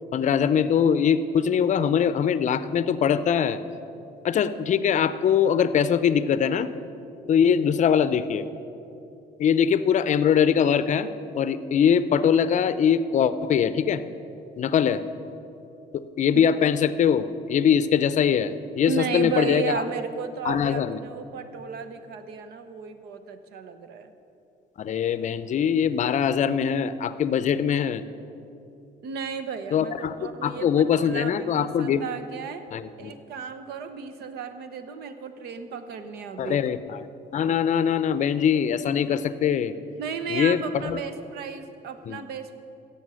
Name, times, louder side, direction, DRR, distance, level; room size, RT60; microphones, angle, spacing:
voice 1, 0.1-3.6 4.2-6.7 7.3-8.4 9.4-11.1 11.3-14.0 14.6-15.0 16.2-19.8 20.4-21.0 24.8-28.0 29.7-30.1 30.4-32.0 32.7-33.1 36.4-37.0 37.3-39.7 40.3-41.0 42.1-42.2, left 8 dB, 45° left, 13 dB, 0.5 m, -22 dB
voice 2, 18.9-24.1 29.0-32.6 33.0-36.6 40.0-42.6, right 6 dB, 75° right, 10 dB, 0.9 m, -34 dB
16.5 x 7.1 x 6.3 m, 2.8 s
cardioid pair, 110°, 17 cm